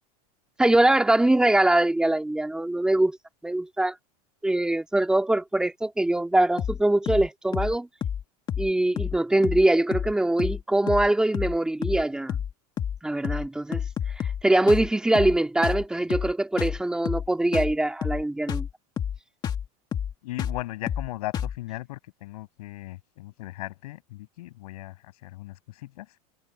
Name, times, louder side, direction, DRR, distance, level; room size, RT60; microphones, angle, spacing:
voice 1, 0.6-3.2 3.4-3.9 4.4-7.9 8.6-12.4 13.0-13.8 14.4-18.7, right 1 dB, 5° right, 2.1 m, -23 dB
sound 1, 6.6-6.8 7.1-7.3 7.5-7.7 8.0-8.2 8.5-8.7 9.0-9.2 9.4-9.6 9.9-10.1 10.4-10.6 10.9-11.1 11.3-11.6 11.8-12.0 12.3-12.5 12.8-13.0 13.2-13.5 13.7-14.4 14.7-14.9 15.1-15.4 15.6-15.8 16.1-16.3 16.6-16.8 17.0-17.3 17.5-17.7 18.0-18.2 18.5-18.7 19.0-19.2 19.4-19.6 19.9-20.1 20.4-20.6 20.9-21.1 21.3-21.6, left 8 dB, 20° left, 1.8 m, -29 dB
voice 2, 20.2-26.1, left 18 dB, 75° left, 7.1 m, -37 dB
supercardioid pair, 170°, 20 cm